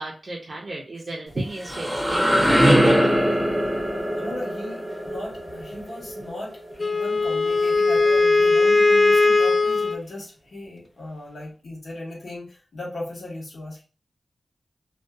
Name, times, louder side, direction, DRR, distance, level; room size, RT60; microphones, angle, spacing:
voice 1, 0.0-3.0, right 2 dB, 50° right, -3 dB, 0.5 m, -34 dB
sound 1, 1.3-7.1, equal, 5° right, 0.7 m, -22 dB
voice 2, 4.1-13.8, left 1 dB, 75° left, -4 dB, 1.1 m, -37 dB
Wind instrument woodwind instrument, 6.8-10.0, left 3 dB, 25° left, 0.4 m, -19 dB
2.6 x 2.3 x 2.3 m, 0.35 s
wide cardioid pair, 75°, 0 cm